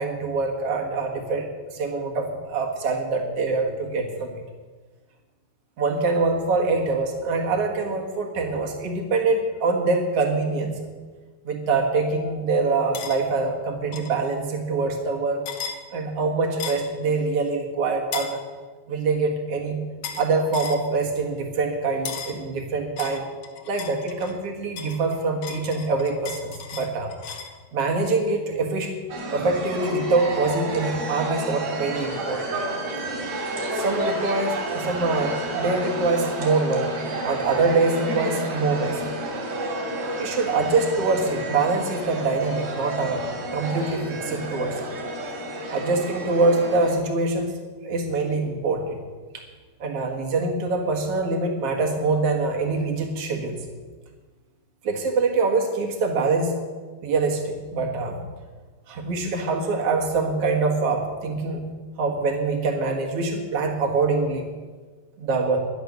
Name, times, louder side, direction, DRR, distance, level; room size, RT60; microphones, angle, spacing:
voice 1, 0.0-4.3 5.8-10.7 11.5-15.5 15.9-18.4 18.9-19.8 20.2-23.2 23.7-27.1 27.7-28.9 29.3-32.6 33.7-36.9 37.2-39.0 40.2-43.2 43.5-44.9 45.7-47.5 47.8-49.0 49.3-49.4 49.8-53.5 54.8-56.6 57.0-58.2 58.9-61.6 62.0-64.5 65.2-65.6, right 3 dB, 55° right, 2 dB, 1.9 m, -24 dB
sound 1, 12.9-13.2 13.9-14.1 15.4-15.8 16.6-16.9 18.1-18.4 20.0-20.3 20.5-20.8 22.0-22.4 23.0-24.4 24.8-27.5, left 7 dB, 85° left, 1.4 m, -35 dB
sound 2, 29.1-46.9, right 1 dB, 70° right, 4.4 m, -31 dB
11.5 x 11.0 x 6.6 m, 1.4 s
omnidirectional pair, 4.7 m